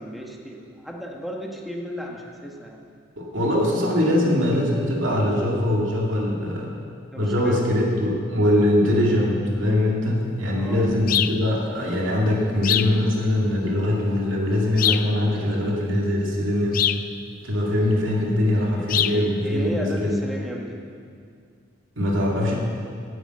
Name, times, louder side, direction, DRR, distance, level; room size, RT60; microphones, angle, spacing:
voice 1, 0.0-2.8 7.1-7.6 10.5-10.9 18.8-18.9 19.1-20.8, equal, ahead, -1 dB, 1.4 m, -34 dB
voice 2, 3.2-6.7 7.2-16.9 17.4-20.2 22.0-22.6, left 1 dB, 85° right, -2 dB, 2.3 m, -22 dB
sound 1, 11.1-11.4 12.6-13.0 14.8-15.1 16.7-17.1 18.9-19.2, left 11 dB, 45° left, 0.3 m, -23 dB
10.5 x 9.1 x 7.9 m, 2.2 s
head